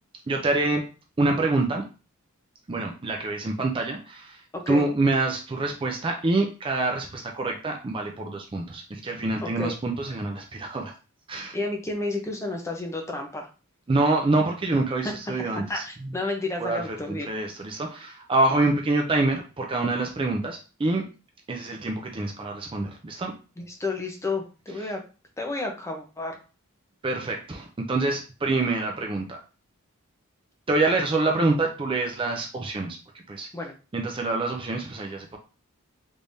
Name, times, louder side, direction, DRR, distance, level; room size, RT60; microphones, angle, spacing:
voice 1, 0.3-0.8 1.2-1.8 2.7-4.4 4.7-10.9 11.3-11.6 13.9-16.1 16.6-21.0 21.5-23.3 27.0-29.4 30.7-33.0 33.3-33.5 33.9-35.4, right 2 dB, 25° right, 2 dB, 0.4 m, -26 dB
voice 2, 4.5-4.9 9.4-9.7 11.5-13.5 15.3-17.3 23.6-25.0 25.4-26.4 33.5-33.7, left 2 dB, 15° left, 2 dB, 0.7 m, -31 dB
3.4 x 3.3 x 2.6 m, 0.34 s
head